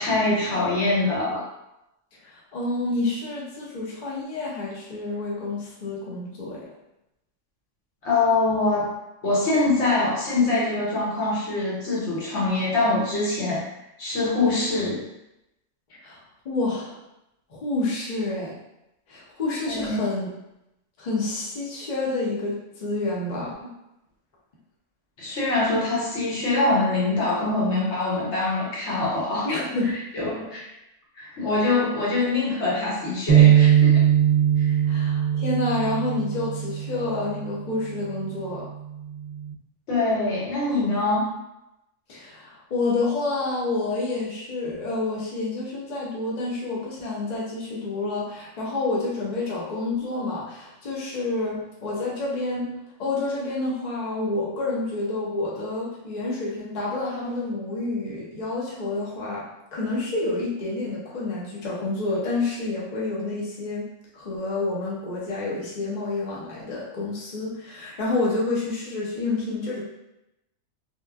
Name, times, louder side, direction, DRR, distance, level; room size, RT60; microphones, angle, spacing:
voice 1, 0.0-1.4 8.0-8.9 9.2-13.7 14.0-15.0 19.7-20.1 25.2-29.5 30.1-30.7 31.2-34.0 34.6-34.7 39.9-41.3, left 2 dB, 65° left, -6 dB, 1.1 m, -24 dB
voice 2, 2.3-6.7 16.0-16.2 16.4-17.0 17.5-18.5 19.1-20.3 21.0-23.7 29.4-29.9 34.9-38.7 42.1-52.7 53.0-59.4 59.7-63.8 64.1-69.8, left 2 dB, 45° left, -6 dB, 0.6 m, -28 dB
sound 1, 33.3-37.5 38.0-38.3 39.1-39.5, right 10 dB, 60° right, 0.7 m, -20 dB
2.9 x 2.1 x 2.3 m, 0.89 s
omnidirectional pair, 1.3 m